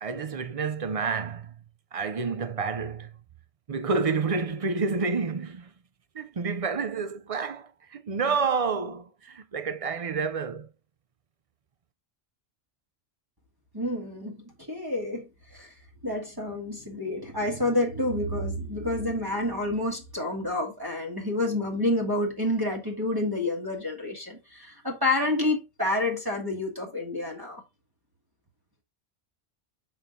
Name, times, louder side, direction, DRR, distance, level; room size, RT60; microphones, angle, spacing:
voice 1, 0.0-1.5 1.9-3.1 3.7-5.7 6.1-10.7, right 5 dB, 40° right, 0.6 m, -29 dB
voice 2, 13.7-14.4 14.7-15.7 16.0-27.6, left 1 dB, 20° right, 1.5 m, -29 dB
7.2 x 4.4 x 3.6 m
omnidirectional pair, 1.1 m